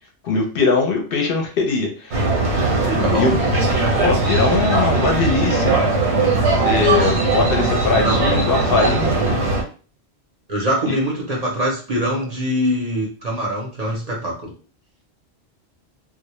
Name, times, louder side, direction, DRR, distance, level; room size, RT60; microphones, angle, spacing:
voice 1, 0.2-2.3 2.9-3.4 4.0-5.8 6.6-9.2 10.9-11.0, left 4 dB, 65° left, 1 dB, 0.7 m, -21 dB
sound 1, 2.1-9.6, right 2 dB, 80° right, 1.0 m, -19 dB
voice 2, 2.9-3.3 7.7-8.2 10.5-14.5, equal, 45° right, -3 dB, 0.6 m, -23 dB
2.1 x 2.0 x 2.9 m, 0.38 s
omnidirectional pair, 1.1 m